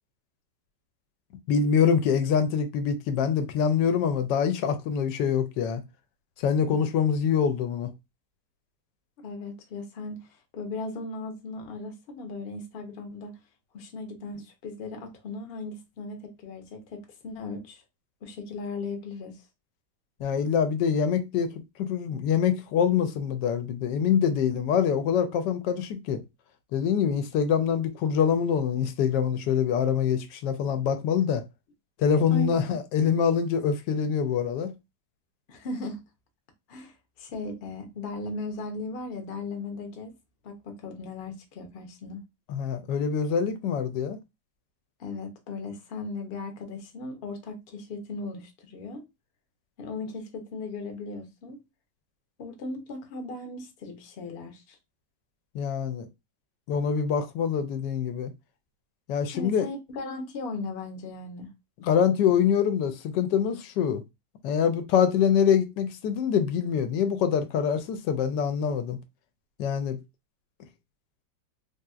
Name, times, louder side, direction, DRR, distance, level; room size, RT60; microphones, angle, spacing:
voice 1, 1.5-5.8 6.4-7.9 20.2-21.5 21.8-26.2 26.7-31.4 32.0-34.7 42.5-44.2 55.5-56.1 56.7-58.3 59.1-59.6 61.8-64.0 64.4-69.0 69.6-70.0, left 7 dB, 90° left, 1.2 m, -25 dB
voice 2, 6.6-6.9 9.2-13.3 13.7-17.8 18.2-19.4 32.3-32.8 35.5-36.0 36.7-40.1 40.4-42.2 45.0-49.0 49.8-51.6 52.4-54.8 59.3-61.5, left 3 dB, 50° left, 0.7 m, -37 dB
3.4 x 2.7 x 2.3 m
omnidirectional pair, 1.8 m